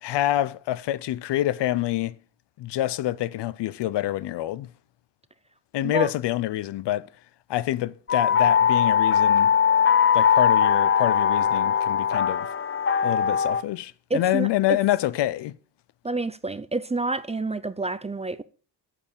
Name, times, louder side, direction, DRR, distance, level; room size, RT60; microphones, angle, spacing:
voice 1, 0.0-2.1 2.6-4.7 5.7-7.1 7.5-9.5 10.1-12.5 13.0-15.5, left 14 dB, 80° left, 0.6 m, -26 dB
sound 1, 8.1-13.6, left 7 dB, 30° left, 0.6 m, -20 dB
voice 2, 14.1-14.8 16.0-18.4, right 3 dB, 15° right, 0.4 m, -28 dB
8.5 x 4.8 x 7.1 m
cardioid pair, 80°, 41 cm